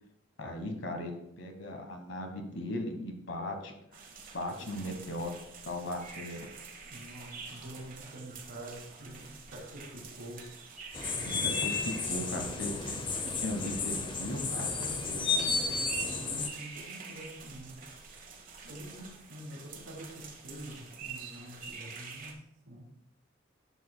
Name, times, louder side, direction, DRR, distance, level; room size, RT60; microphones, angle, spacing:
voice 1, 0.4-3.7 4.3-5.3 5.6-6.5 11.2-13.1 13.4-14.7, left 1 dB, 65° left, 4 dB, 1.3 m, -37 dB
sound 1, 3.9-22.3, right 5 dB, 40° right, 1.1 m, -47 dB
voice 2, 4.6-5.0 6.8-10.4 12.1-12.7 14.5-17.8 18.6-22.3 22.6-22.9, right 1 dB, 80° right, -1 dB, 2.2 m, -46 dB
sound 2, 10.9-16.5, left 4 dB, 25° left, 0.7 m, -32 dB
11.0 x 7.0 x 2.2 m, 0.77 s
head